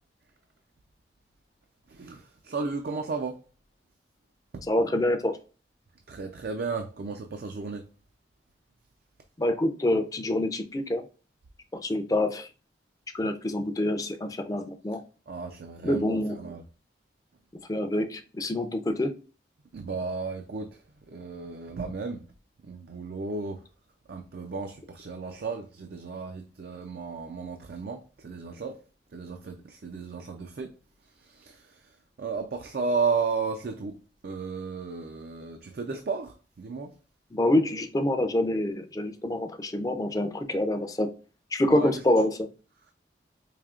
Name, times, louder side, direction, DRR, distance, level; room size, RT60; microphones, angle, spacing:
voice 1, 1.9-3.4 4.5-4.6 6.1-7.9 15.3-16.6 19.7-20.8 21.1-22.2 22.7-23.6 24.1-28.8 29.1-30.7 31.2-31.7 32.2-34.0 34.2-36.9 41.7-41.9, right 4 dB, 60° right, 0.4 m, -34 dB
voice 2, 4.7-5.3 9.4-11.0 11.8-12.5 13.1-15.0 15.8-16.4 17.7-19.1 37.3-41.1 41.5-42.5, left 1 dB, 20° left, 0.4 m, -26 dB
4.9 x 2.8 x 2.3 m
head